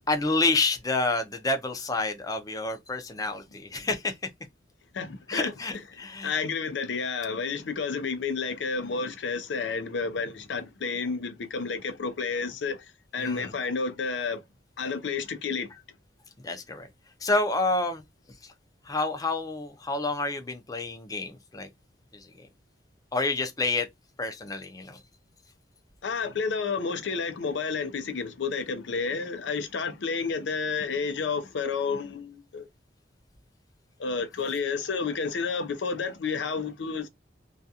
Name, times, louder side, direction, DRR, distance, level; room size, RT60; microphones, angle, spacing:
voice 1, 0.1-4.1 5.3-6.4 13.2-13.5 16.4-16.9 17.2-18.0 18.4-18.5 18.9-21.7 22.2-22.5 23.1-23.9 24.2-25.0, left 2 dB, 20° left, 0.5 m, -28 dB
voice 2, 4.9-5.5 6.2-12.9 13.1-14.4 14.8-15.7 26.0-32.7 34.0-37.1, left 5 dB, 80° left, 0.5 m, -30 dB
2.4 x 2.3 x 2.7 m
head